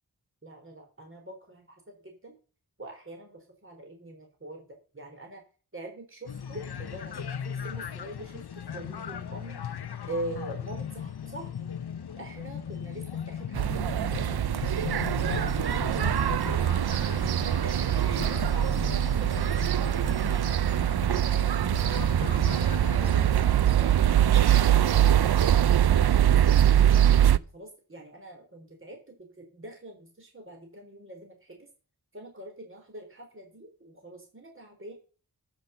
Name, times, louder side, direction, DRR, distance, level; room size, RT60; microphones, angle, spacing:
voice 1, 0.4-2.3 2.8-5.4 5.7-9.6 10.1-11.7 12.2-14.4 15.2-20.3 27.3-31.7 32.1-34.9, right 1 dB, 35° right, 2 dB, 3.7 m, -44 dB
sound 1, 6.3-23.5, left 8 dB, 85° left, 0.9 m, -37 dB
sound 2, 13.5-27.4, right 11 dB, 80° right, 0.6 m, -23 dB
13.5 x 5.9 x 6.8 m, 0.38 s
wide cardioid pair, 85°, 38 cm